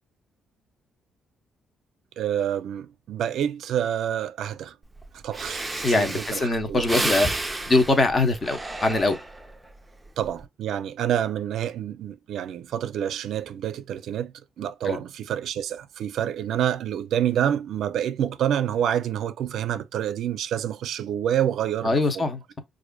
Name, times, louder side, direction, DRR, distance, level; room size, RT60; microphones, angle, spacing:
voice 1, 2.2-4.8 5.1-5.7 6.0-6.8 10.2-22.3, right 10 dB, 75° right, 0.4 m, -28 dB
Breathing, 5.0-5.1 5.3-9.6 10.1-10.4, right 2 dB, 15° right, 0.5 m, -31 dB
voice 2, 5.8-7.3 7.6-9.2 14.8-15.0 21.8-22.4, left 2 dB, 35° left, 0.9 m, -22 dB
4.7 x 2.5 x 2.2 m
cardioid pair, 90°, 0 cm